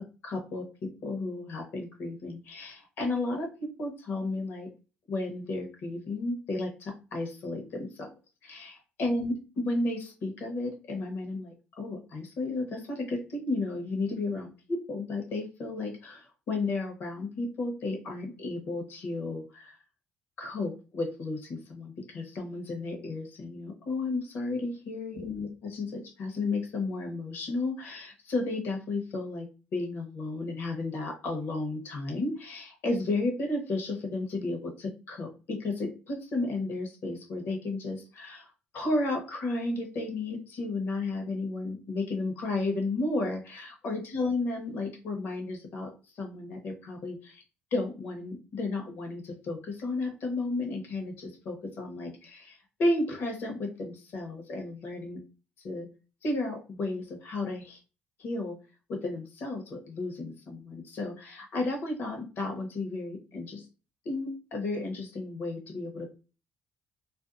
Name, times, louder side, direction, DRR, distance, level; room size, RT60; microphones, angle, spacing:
voice 1, 0.2-4.7 5.1-8.1 8.4-19.8 20.4-29.5 29.7-38.5 38.7-45.9 46.2-47.4 47.7-55.2 55.6-55.9 56.2-57.8 58.2-58.6 58.9-63.6 64.0-66.1, left 2 dB, 65° left, 2 dB, 1.0 m, -33 dB
2.6 x 2.2 x 2.4 m, 0.33 s
cardioid pair, 105°, 4 cm